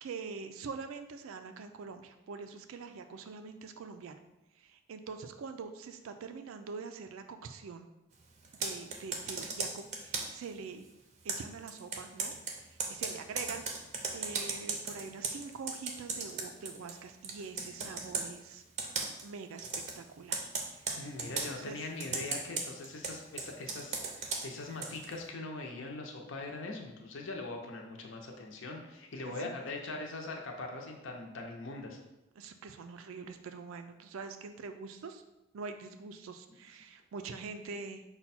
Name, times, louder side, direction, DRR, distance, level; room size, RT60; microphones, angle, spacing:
voice 1, 0.0-4.2 4.6-7.9 8.6-10.9 11.2-13.6 14.1-18.6 19.2-19.7 20.0-20.5 20.7-21.8 29.2-29.6 32.4-35.2 35.5-38.0, right 4 dB, 90° right, 8 dB, 0.4 m, -44 dB
Computer keyboard, 8.4-10.4 11.3-17.0 17.2-18.3 18.8-19.3 19.6-20.0 20.3-21.5 22.0-25.1, right 4 dB, 35° right, 0.5 m, -37 dB
voice 2, 20.9-32.0, left 2 dB, 75° left, 1 dB, 0.7 m, -41 dB
5.6 x 2.2 x 4.2 m, 0.95 s
head